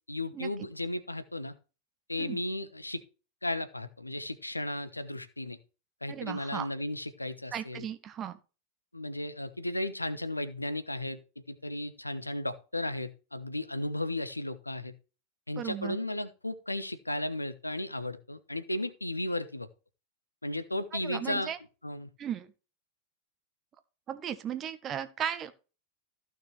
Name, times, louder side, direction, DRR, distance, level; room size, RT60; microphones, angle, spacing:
voice 1, 0.1-1.5 2.1-3.0 3.4-5.6 6.0-7.9 8.9-11.2 11.5-14.9 15.5-19.7 20.4-21.5 21.8-22.1, left 1 dB, 85° left, 1.0 m, -35 dB
voice 2, 6.1-6.7 7.5-8.4 15.6-16.0 21.0-21.6 22.2-22.5 24.1-25.5, right 9 dB, 30° right, 1.2 m, -36 dB
14.5 x 6.0 x 3.3 m
figure-of-eight pair, 90°, 0 cm